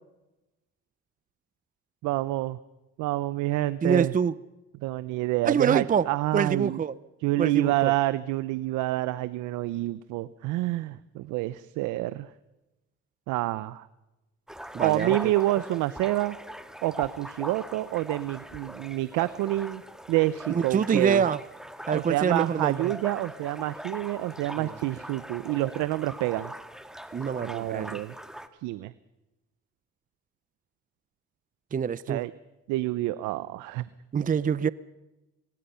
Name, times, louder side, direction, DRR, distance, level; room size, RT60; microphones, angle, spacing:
voice 1, 2.0-2.6 3.0-4.1 4.8-6.8 7.2-12.3 13.3-13.9 14.8-16.4 16.8-19.8 20.1-21.2 21.9-26.5 27.4-28.1 28.6-28.9 32.1-32.3 32.7-33.8, right 17 dB, 85° right, 16 dB, 0.7 m, -28 dB
voice 2, 3.8-4.3 5.4-6.1 6.3-6.9 7.4-7.9 14.7-15.2 20.5-21.4 21.9-22.8 24.6-24.7 27.1-28.0 31.7-32.2 34.1-34.7, right 7 dB, 30° right, 18 dB, 0.6 m, -25 dB
sound 1, 14.5-28.5, equal, ahead, 1.7 m, -41 dB
24.5 x 20.5 x 5.7 m, 1.0 s
cardioid pair, 90°, 29 cm